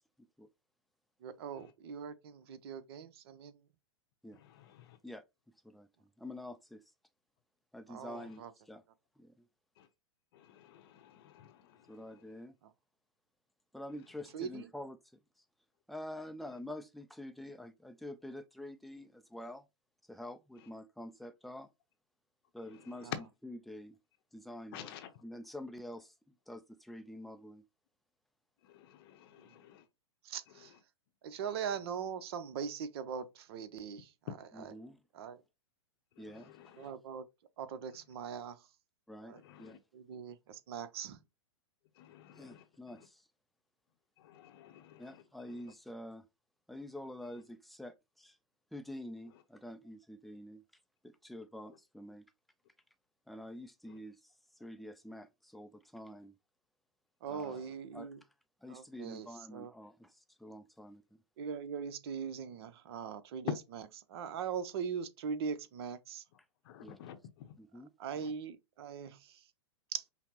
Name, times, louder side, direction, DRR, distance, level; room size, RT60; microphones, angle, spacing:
voice 1, 1.2-3.6 7.9-8.5 14.3-14.7 23.0-23.1 30.2-30.7 31.2-34.7 35.1-35.4 36.8-37.3 37.6-38.6 39.2-39.4 39.9-41.2 57.2-58.2 58.7-59.7 61.4-66.2 68.0-69.4 69.9-70.0, right 7 dB, 55° right, 0.6 m, -41 dB
voice 2, 5.6-6.8 7.7-8.8 9.2-9.4 11.9-12.5 13.7-15.0 15.9-19.6 20.1-21.7 22.5-24.0 24.3-25.0 25.2-26.1 26.5-27.6 34.5-35.0 36.2-36.6 39.1-39.3 39.6-39.8 42.3-43.2 45.0-46.3 46.7-48.4 48.7-50.6 51.0-52.3 53.3-54.2 54.6-56.3 57.3-57.7 57.9-58.1 58.6-60.1 60.4-61.0 66.8-67.0 67.6-67.9, left 1 dB, ahead, 0.4 m, -47 dB
voice 3, 10.3-11.5 24.7-25.1 28.7-29.8 36.4-36.9 39.4-39.8 42.0-42.6 44.2-45.1 66.7-67.5 68.2-68.3, left 10 dB, 50° left, 0.7 m, -53 dB
5.6 x 2.0 x 2.9 m
hypercardioid pair, 105°, 15 cm